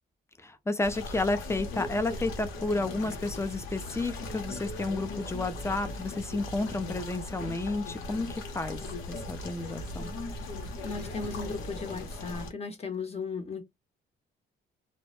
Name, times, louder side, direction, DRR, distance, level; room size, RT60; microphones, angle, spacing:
voice 1, 0.4-8.8 9.1-10.1, left 2 dB, 15° left, 0.5 m, -31 dB
sound 1, 0.8-12.5, left 2 dB, 80° left, 0.8 m, -38 dB
voice 2, 8.7-9.0 9.6-9.9 10.8-13.6, left 4 dB, 30° left, 0.8 m, -37 dB
2.1 x 2.0 x 3.0 m
cardioid pair, 90°, 20 cm